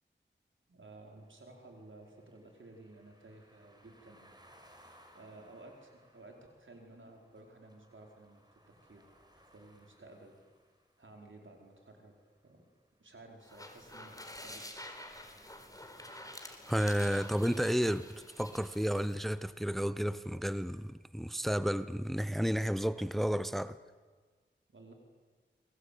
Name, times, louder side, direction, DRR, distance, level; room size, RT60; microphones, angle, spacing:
voice 1, 0.7-4.3 5.1-9.0 9.3-10.4 11.0-12.2 12.4-12.6 13.0-14.7 24.7-24.9, right 2 dB, 80° right, 4.9 m, -54 dB
sound 1, 0.9-12.9, equal, 20° right, 5.0 m, -64 dB
sound 2, 13.4-19.2, left 1 dB, 20° left, 4.1 m, -49 dB
voice 2, 16.7-18.1 18.4-23.8, equal, ahead, 0.8 m, -32 dB
29.0 x 21.5 x 8.6 m
wide cardioid pair, 45°, 20 cm